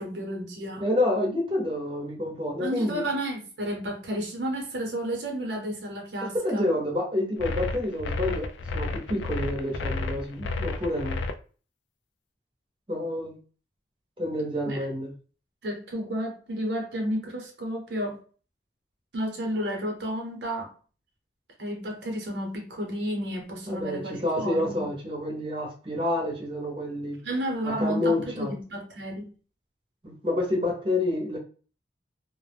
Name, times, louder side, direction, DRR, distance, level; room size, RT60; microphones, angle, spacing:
voice 1, 0.0-0.8 2.6-6.7 14.6-14.8 15.6-18.2 19.1-20.7 21.6-24.8 27.2-29.3, equal, 75° right, 0.8 m, -32 dB
voice 2, 0.8-3.1 6.2-11.2 12.9-13.4 14.2-15.1 23.7-27.2 27.6-28.5 30.0-31.4, left 1 dB, 30° right, 0.7 m, -28 dB
sound 1, 7.4-11.3, left 3 dB, 90° left, 0.3 m, -31 dB
2.1 x 2.1 x 3.2 m
head